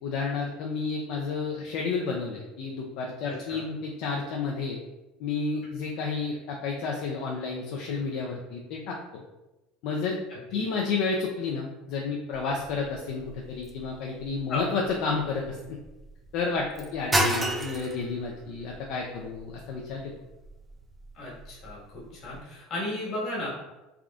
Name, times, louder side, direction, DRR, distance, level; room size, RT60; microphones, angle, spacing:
voice 1, 0.0-4.8 5.2-9.2 9.8-10.2 10.5-15.8 16.3-20.1, left 4 dB, 65° left, -1 dB, 0.4 m, -31 dB
voice 2, 3.2-3.6 10.3-10.6 14.5-14.7 21.1-21.8 22.1-23.5, left 2 dB, 45° left, -5 dB, 1.3 m, -34 dB
sound 1, 12.3-22.4, right 1 dB, 10° right, 0.4 m, -35 dB
3.4 x 2.5 x 2.3 m, 1.0 s
supercardioid pair, 120°, 0 cm